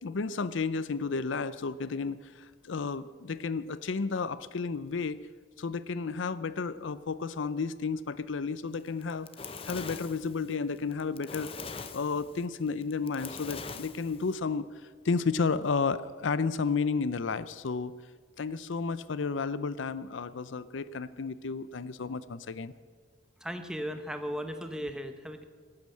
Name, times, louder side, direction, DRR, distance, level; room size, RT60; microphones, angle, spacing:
voice 1, 0.0-5.2 5.6-9.3 9.6-11.5 11.9-17.9 18.4-22.7, left 4 dB, 80° left, 16 dB, 0.6 m, -32 dB
Fire, 8.9-14.4, left 5 dB, 30° left, 0.7 m, -42 dB
voice 2, 23.4-25.4, equal, 5° right, 7 dB, 0.8 m, -36 dB
18.0 x 8.8 x 7.7 m, 1.5 s
head